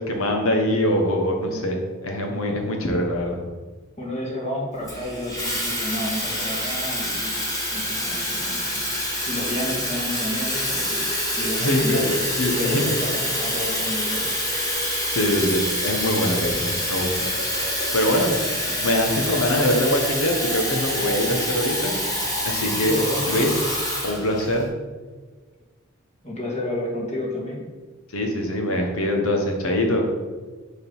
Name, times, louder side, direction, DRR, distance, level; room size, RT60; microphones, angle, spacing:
voice 1, 0.0-3.4 11.6-13.0 15.1-17.3 17.9-18.4 18.8-21.9 22.4-23.0 23.3-23.5 24.0-24.7 28.1-30.0, left 1 dB, 80° left, 2 dB, 1.3 m, -23 dB
voice 2, 4.0-7.3 7.7-8.9 9.3-11.0 11.4-14.3 18.7-18.8 22.8-23.5 26.2-27.6, left 1 dB, 35° left, -3 dB, 1.9 m, -31 dB
Water tap faucet / Fill (with liquid), 4.9-24.6, equal, 15° left, 1.5 m, -26 dB
6.7 x 4.0 x 5.5 m, 1.4 s
head